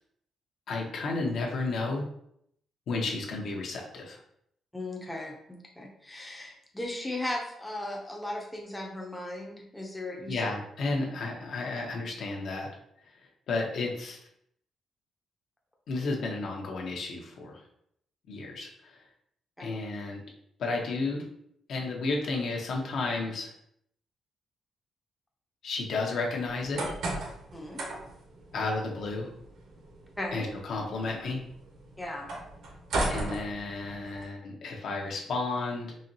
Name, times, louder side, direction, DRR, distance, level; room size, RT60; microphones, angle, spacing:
voice 1, 0.7-2.1 2.9-4.2 10.3-12.7 13.5-14.2 15.9-17.6 18.3-19.0 19.6-20.2 20.6-21.2 21.7-23.5 25.6-26.9 28.5-29.3 30.3-31.4 33.1-35.9, left 3 dB, 60° left, 0 dB, 0.8 m, -32 dB
voice 2, 4.7-10.4 19.6-19.7 27.5-27.8 30.2-30.5 32.0-32.3, left 1 dB, 5° left, -1 dB, 0.5 m, -37 dB
sound 1, 26.5-34.2, right 2 dB, 75° right, 1.0 m, -37 dB
4.0 x 2.9 x 2.7 m, 0.71 s
cardioid pair, 155°, 0 cm